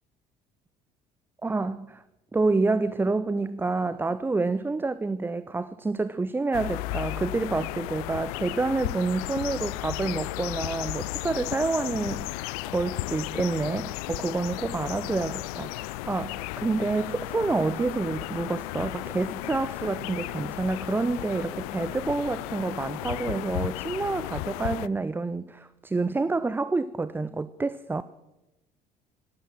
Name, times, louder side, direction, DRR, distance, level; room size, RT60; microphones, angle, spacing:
voice 1, 1.4-2.0 2.3-28.0, right 3 dB, 10° right, 15 dB, 0.4 m, -28 dB
sound 1, 6.5-24.9, left 20 dB, 60° left, 0.4 m, -34 dB
13.0 x 12.0 x 6.0 m, 0.98 s
figure-of-eight pair, 55°, 21 cm